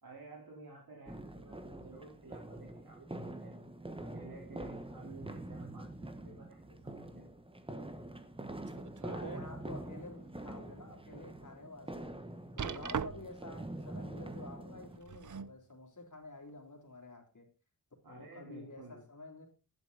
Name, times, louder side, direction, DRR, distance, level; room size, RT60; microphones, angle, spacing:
voice 1, 0.0-3.5 4.0-7.3 18.0-19.0, right 3 dB, 75° right, -1 dB, 3.8 m, -53 dB
sound 1, 1.1-15.0, right 1 dB, 15° right, 1.2 m, -45 dB
sound 2, 8.7-9.5 10.0-10.1 10.7-10.8 12.6-13.5 14.8-15.6 16.5-16.6, right 7 dB, 55° right, 0.7 m, -40 dB
voice 2, 9.0-12.1 12.6-17.5 18.1-19.5, left 2 dB, 55° left, 2 dB, 3.5 m, -50 dB
11.5 x 10.5 x 4.0 m, 0.31 s
wide cardioid pair, 110°, 36 cm